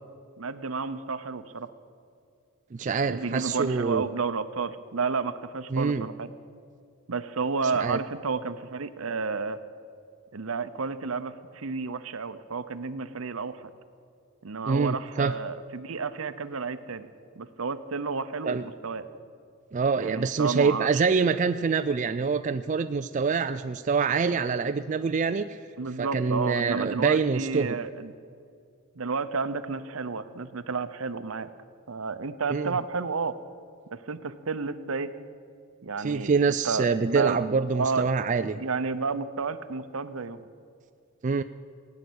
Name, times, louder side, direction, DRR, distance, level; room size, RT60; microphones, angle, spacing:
voice 1, 0.4-1.7 3.1-6.3 7.1-9.6 10.3-13.7 14.4-17.1 17.4-19.0 20.0-21.0 25.8-28.1 29.0-31.5 31.9-33.4 33.9-35.1 35.8-36.4 36.6-37.4 37.7-38.1 38.6-40.4, right 4 dB, 75° right, 12 dB, 0.8 m, -31 dB
voice 2, 2.7-4.1 5.7-6.1 7.7-8.0 14.6-15.3 18.5-18.6 19.7-25.6 26.0-27.8 32.5-32.7 36.0-38.6 41.2-41.4, right 5 dB, 35° right, 9 dB, 0.3 m, -25 dB
17.5 x 9.7 x 8.0 m, 2.3 s
head